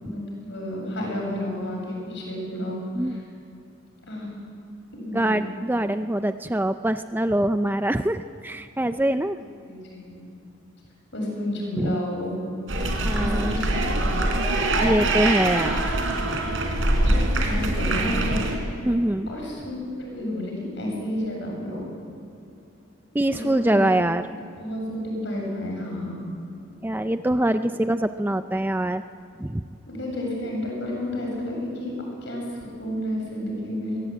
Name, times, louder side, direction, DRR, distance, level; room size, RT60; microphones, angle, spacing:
voice 1, 0.0-2.8 3.1-3.2 4.1-4.3 4.9-5.5 9.6-10.3 11.1-12.3 13.2-13.9 17.0-18.4 19.3-21.8 23.3-23.8 24.6-26.2 29.9-31.9 32.2-34.0, left 1 dB, 60° left, -1 dB, 8.0 m, -31 dB
voice 2, 5.1-9.4 11.8-12.0 13.0-13.6 14.8-15.9 18.8-19.3 23.1-24.3 26.8-29.0 29.4-29.6, right 1 dB, 10° right, 9 dB, 0.4 m, -24 dB
sound 1, 12.7-18.6, right 1 dB, 70° right, 3.8 m, -23 dB
24.5 x 18.5 x 9.1 m, 2.7 s
head